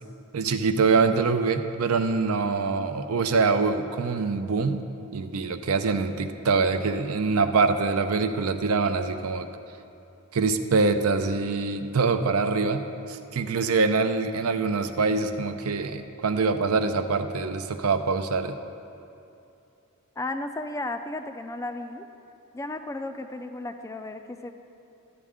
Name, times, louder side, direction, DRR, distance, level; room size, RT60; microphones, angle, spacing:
voice 1, 0.3-4.8 5.1-9.5 10.3-18.5, right 4 dB, 75° right, 8 dB, 0.6 m, -24 dB
voice 2, 20.2-22.1 22.5-24.5, left 2 dB, 15° left, 7 dB, 0.3 m, -34 dB
13.5 x 8.3 x 3.6 m, 2.7 s
head